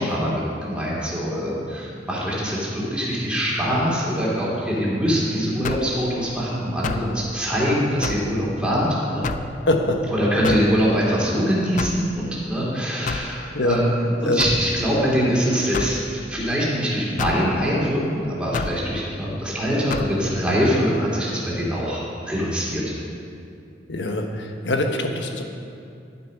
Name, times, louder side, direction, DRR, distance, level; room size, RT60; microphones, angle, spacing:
voice 1, 0.0-9.3 10.1-22.8, equal, 5° right, -7 dB, 3.0 m, -23 dB
sound 1, 5.6-6.0 6.8-7.1 8.0-8.3 9.2-9.5 10.4-10.7 11.8-12.1 13.1-13.3 14.4-14.6 15.7-16.0 17.2-17.4 18.5-18.8 19.9-20.1, left 4 dB, 45° left, 0.4 m, -28 dB
voice 2, 9.7-10.0 13.5-13.8 14.2-14.4 23.9-25.4, left 1 dB, 75° left, 3 dB, 1.2 m, -23 dB
11.5 x 8.6 x 5.6 m, 2.5 s
head